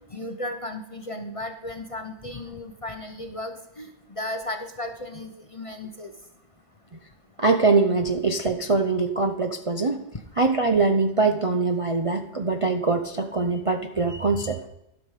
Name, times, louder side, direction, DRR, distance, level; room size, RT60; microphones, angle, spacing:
voice 1, 0.0-6.1, left 1 dB, 30° left, 6 dB, 0.7 m, -35 dB
voice 2, 7.4-10.0 10.4-14.6, right 3 dB, 35° right, 5 dB, 0.5 m, -23 dB
12.0 x 6.0 x 4.9 m, 0.89 s
omnidirectional pair, 1.3 m